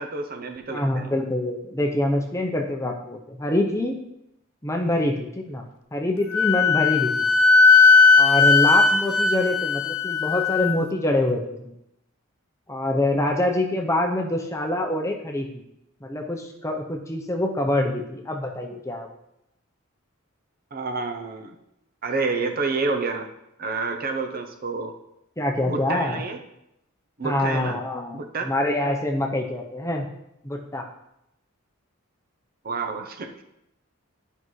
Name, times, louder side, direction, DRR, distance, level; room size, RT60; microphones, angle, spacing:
voice 1, 0.0-1.1 20.7-21.6 22.0-23.3 23.6-24.9 25.6-26.4 27.2-27.8 28.1-28.5 32.6-33.4, right 3 dB, 40° right, 5 dB, 0.6 m, -29 dB
voice 2, 0.7-3.9 4.6-5.6 5.9-7.3 8.2-11.6 12.7-15.6 16.0-19.1 25.4-26.2 27.2-30.1 30.4-30.8, left 1 dB, 15° left, 2 dB, 0.7 m, -25 dB
Wind instrument woodwind instrument, 6.3-10.8, left 4 dB, 75° left, 0.6 m, -17 dB
10.5 x 5.6 x 3.2 m, 0.83 s
head